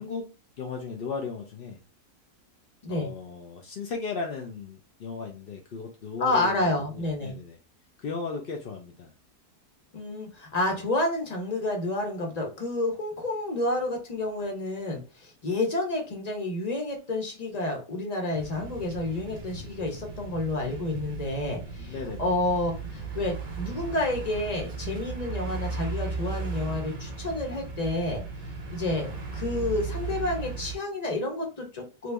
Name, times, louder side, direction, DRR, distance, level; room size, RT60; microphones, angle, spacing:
voice 1, 0.0-1.8 2.9-7.6 8.0-9.1 10.7-10.8 21.8-22.4, left 4 dB, 70° left, 0.5 m, -36 dB
voice 2, 6.2-7.3 9.9-28.2 28.7-32.1, left 2 dB, 30° left, 1.0 m, -30 dB
sound 1, 18.3-30.8, right 4 dB, 40° right, 0.6 m, -36 dB
3.1 x 2.5 x 3.3 m
omnidirectional pair, 1.7 m